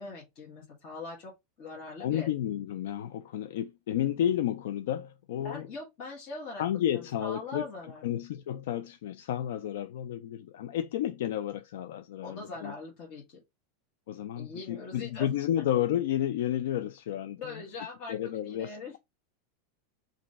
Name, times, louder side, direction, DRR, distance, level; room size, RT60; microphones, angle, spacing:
voice 1, 0.0-1.3 1.6-2.3 5.4-6.6 6.9-8.2 12.2-13.4 14.3-15.3 17.4-19.0, left 3 dB, 40° left, 1.1 m, -42 dB
voice 2, 2.0-5.7 6.6-7.7 8.0-12.7 14.1-17.6 18.1-19.0, left 11 dB, 75° left, 0.3 m, -31 dB
3.0 x 2.6 x 4.0 m
supercardioid pair, 170°, 0 cm